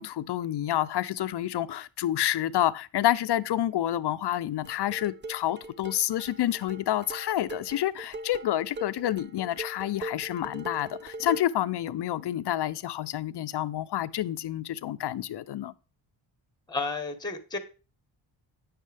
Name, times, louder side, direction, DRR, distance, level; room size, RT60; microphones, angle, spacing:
voice 1, 0.0-15.7, left 12 dB, 55° left, 0.6 m, -29 dB
sound 1, 4.6-11.6, right 2 dB, 25° right, 0.5 m, -41 dB
voice 2, 16.7-17.6, left 3 dB, 10° left, 1.1 m, -32 dB
9.0 x 6.5 x 3.4 m
cardioid pair, 85°, 48 cm